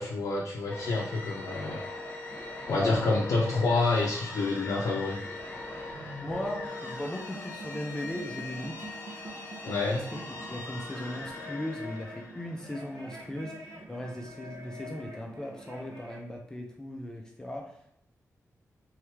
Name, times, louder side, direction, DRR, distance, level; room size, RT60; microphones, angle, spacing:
voice 1, 0.0-1.8 2.7-5.2 9.6-10.0, left 3 dB, 90° left, -3 dB, 0.6 m, -28 dB
sound 1, 0.7-13.2, left 2 dB, 30° left, 0.8 m, -41 dB
voice 2, 2.7-3.0 6.2-8.9 9.9-17.9, left 1 dB, 10° left, 0 dB, 0.4 m, -38 dB
sound 2, 6.4-16.3, equal, 65° right, 0.8 m, -46 dB
3.5 x 3.2 x 3.3 m, 0.70 s
wide cardioid pair, 175°, 6 cm